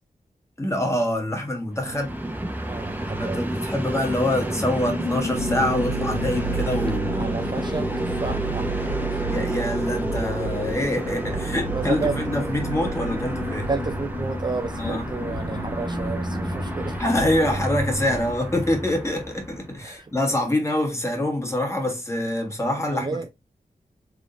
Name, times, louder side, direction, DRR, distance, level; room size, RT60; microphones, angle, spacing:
voice 1, 0.6-2.1 3.2-7.3 9.2-13.7 14.8-15.1 17.0-23.1, left 1 dB, 20° left, 1.5 m, -25 dB
Train, 1.7-19.8, right 1 dB, 10° right, 0.9 m, -30 dB
voice 2, 2.6-3.4 7.1-8.7 9.1-9.2 11.7-12.3 13.7-17.0 19.8-20.1 22.8-23.3, right 4 dB, 30° right, 0.4 m, -31 dB
sound 1, 4.8-18.3, right 1 dB, 70° left, 0.9 m, -32 dB
3.7 x 3.5 x 2.5 m
wide cardioid pair, 70°, 15 cm